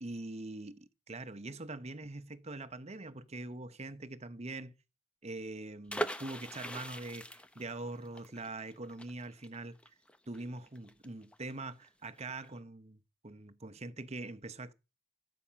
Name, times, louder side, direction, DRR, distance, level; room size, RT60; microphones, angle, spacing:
voice 1, 0.0-4.7 5.2-9.8 10.3-13.0 13.2-14.7, right 2 dB, 30° right, 0.9 m, -43 dB
sound 1, 5.9-11.5 11.8-11.9 12.2-12.5, right 1 dB, 5° left, 0.7 m, -41 dB
13.5 x 8.5 x 5.7 m
head